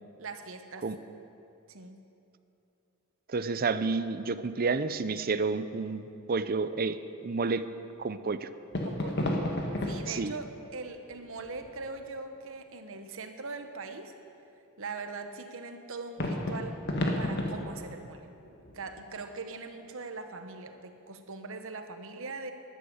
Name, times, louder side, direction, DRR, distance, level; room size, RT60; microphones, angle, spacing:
voice 1, 0.2-0.9 1.7-2.0 8.8-9.3 9.8-14.1 14.8-16.8 17.2-18.3 18.7-22.5, right 3 dB, 60° right, 7 dB, 1.1 m, -41 dB
voice 2, 3.3-7.0 7.2-7.6 8.0-8.5 10.1-10.3, right 4 dB, 40° right, 13 dB, 0.6 m, -30 dB
sound 1, 8.7-12.1 16.2-19.5, left 1 dB, 50° left, 1.7 m, -34 dB
12.5 x 11.5 x 8.0 m, 2.7 s
head